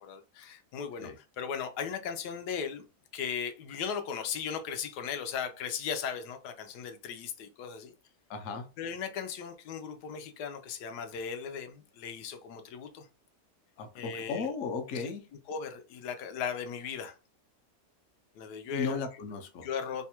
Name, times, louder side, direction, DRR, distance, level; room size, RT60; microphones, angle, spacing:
voice 1, 0.0-2.8 3.1-7.9 8.8-13.1 13.9-14.5 14.9-15.1 15.5-17.2 18.4-19.0 19.6-20.0, left 7 dB, 90° left, 1.2 m, -37 dB
voice 2, 8.3-8.7 13.8-15.3 18.7-19.7, left 5 dB, 60° left, 1.0 m, -35 dB
3.1 x 2.3 x 4.3 m
omnidirectional pair, 1.7 m